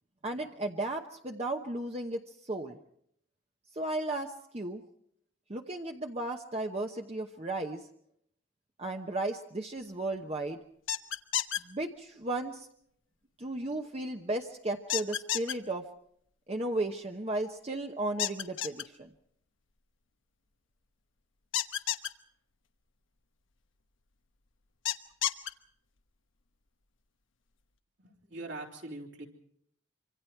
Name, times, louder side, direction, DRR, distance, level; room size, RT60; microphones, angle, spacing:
voice 1, 0.2-2.8 3.7-4.8 5.5-7.9 8.8-10.6 11.6-12.7 13.4-15.8 16.5-19.1, right 2 dB, 30° right, 3 dB, 0.9 m, -35 dB
sound 1, 10.9-11.6 14.9-15.5 18.2-18.8 21.5-22.1 24.9-25.5, left 11 dB, 90° left, 1.1 m, -30 dB
voice 2, 28.0-29.3, right 2 dB, 70° right, 0 dB, 4.0 m, -42 dB
26.0 x 25.0 x 4.6 m, 0.70 s
head